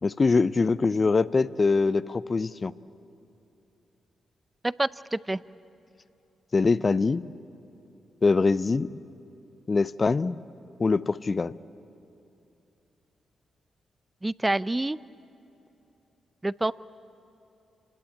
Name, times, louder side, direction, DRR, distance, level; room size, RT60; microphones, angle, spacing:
voice 1, 0.0-2.7 6.5-7.3 8.2-8.9 9.7-10.4 10.8-11.5, left 4 dB, 40° left, 16 dB, 0.7 m, -23 dB
voice 2, 4.6-5.4 14.2-15.0 16.4-16.7, right 2 dB, 20° right, 17 dB, 0.6 m, -27 dB
28.0 x 20.0 x 8.6 m, 2.9 s
supercardioid pair, 50°, 0 cm